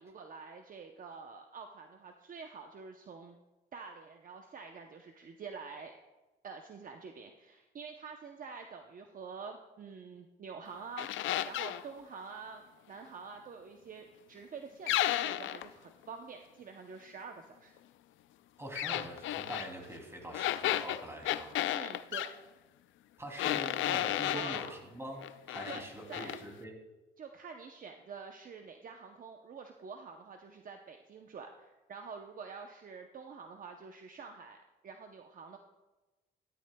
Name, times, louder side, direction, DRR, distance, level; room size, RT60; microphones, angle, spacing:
voice 1, 0.0-3.4 3.7-5.9 6.4-17.7 21.7-22.3 24.3-24.8 25.7-26.4 27.2-34.6 34.8-35.6, right 5 dB, 45° right, 4 dB, 0.7 m, -47 dB
sound 1, 11.0-11.8 14.9-15.7 18.8-19.7 20.3-22.3 23.4-24.7 25.2-25.8 26.1-26.4, left 13 dB, 75° left, 0.4 m, -33 dB
voice 2, 18.6-21.5 23.2-26.8, right 1 dB, 15° right, 1 dB, 2.8 m, -44 dB
13.5 x 11.5 x 2.3 m, 1.1 s
cardioid pair, 90°, 20 cm